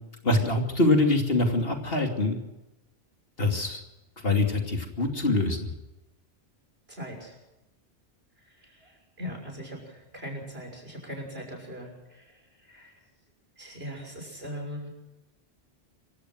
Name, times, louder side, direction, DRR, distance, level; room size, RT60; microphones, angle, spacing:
voice 1, 0.2-2.4 3.4-3.8 4.2-5.7, left 2 dB, 60° left, 4 dB, 3.1 m, -24 dB
voice 2, 6.9-7.4 8.5-12.9 13.6-14.9, equal, 65° right, 2 dB, 6.8 m, -40 dB
26.0 x 16.0 x 6.3 m, 0.98 s
omnidirectional pair, 1.1 m